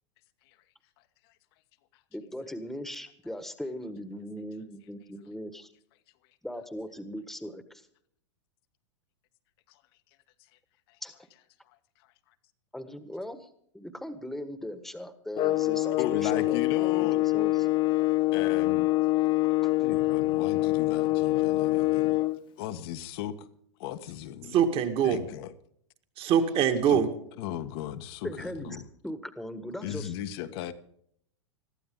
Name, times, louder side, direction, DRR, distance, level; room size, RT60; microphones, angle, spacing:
voice 1, 2.1-5.7 6.4-7.9 11.0-11.1 12.7-13.5 13.7-17.7 19.6-19.7 28.2-30.1, equal, ahead, 1.6 m, -39 dB
sound 1, 15.4-22.4, left 19 dB, 30° left, 0.6 m, -25 dB
voice 2, 16.0-17.2 18.3-18.9 19.8-22.2 22.6-23.5 23.8-24.6 25.0-25.5 26.9-27.0 27.4-28.8 29.8-30.7, left 12 dB, 55° left, 1.4 m, -36 dB
voice 3, 24.5-25.2 26.2-27.1, right 8 dB, 35° right, 2.2 m, -23 dB
21.5 x 14.5 x 3.9 m
hypercardioid pair, 105°, 15 cm